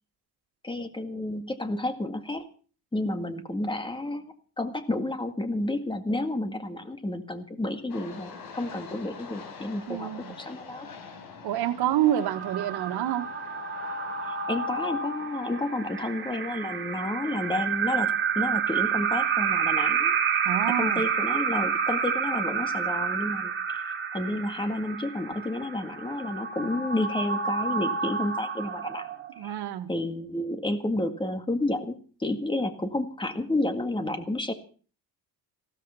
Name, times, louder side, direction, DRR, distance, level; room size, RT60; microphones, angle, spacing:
voice 1, 0.6-2.5 2.9-10.1 10.4-10.9 14.2-20.2 20.7-29.1 29.4-29.5 29.9-34.5, left 1 dB, 10° left, 1.9 m, -31 dB
sound 1, 7.9-22.8, left 5 dB, 65° left, 4.6 m, -48 dB
voice 2, 9.9-10.4 11.4-13.3 20.5-21.0 29.4-29.9, right 12 dB, 75° right, 1.9 m, -27 dB
sound 2, 12.1-29.4, right 6 dB, 30° right, 2.5 m, -29 dB
16.0 x 13.5 x 5.8 m
cardioid pair, 145°, 39 cm